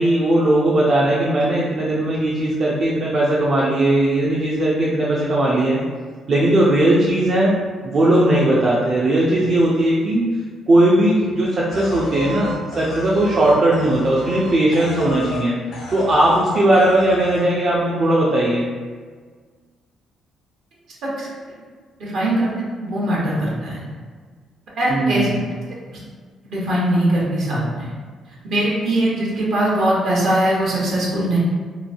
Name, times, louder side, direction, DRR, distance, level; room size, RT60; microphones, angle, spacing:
voice 1, 0.0-5.8 6.3-7.5 7.8-10.2 10.7-15.5 15.9-18.7 24.9-25.3, right 1 dB, 55° right, -6 dB, 0.5 m, -18 dB
sound 1, 11.7-15.5 15.7-16.4 16.7-17.4, left 2 dB, 80° left, 0.6 m, -32 dB
voice 2, 22.0-23.9 24.8-25.3 26.4-27.9 28.5-31.4, right 1 dB, 70° right, -5 dB, 1.0 m, -21 dB
3.0 x 2.2 x 2.5 m, 1.5 s
supercardioid pair, 70°, 0 cm